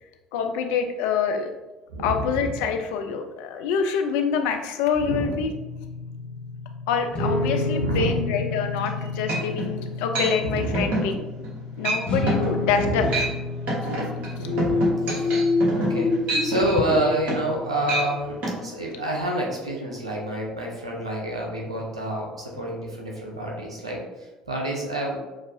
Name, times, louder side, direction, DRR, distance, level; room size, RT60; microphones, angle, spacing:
voice 1, 0.3-1.5 2.0-5.5 6.9-11.2 11.8-13.1, left 6 dB, 65° left, 5 dB, 0.4 m, -26 dB
voice 2, 1.9-2.7 4.9-5.5 7.8-8.3 10.4-11.0 12.7-13.1 14.4-16.1 16.4-25.2, right 1 dB, 90° right, -1 dB, 0.6 m, -28 dB
sound 1, 5.5-18.1, left 3 dB, 40° left, 1.0 m, -31 dB
sound 2, 8.8-8.9 9.3-9.7 10.1-10.3 10.7-11.1 11.4-11.6 11.8-12.0 12.3-12.5 12.9-13.3 13.7-17.6 17.8-18.1 18.4-18.6, right 2 dB, 60° right, 1.2 m, -27 dB
sound 3, 14.5-18.1, left 3 dB, 5° right, 1.2 m, -26 dB
5.9 x 2.6 x 2.6 m, 1.1 s
figure-of-eight pair, 55°, 3 cm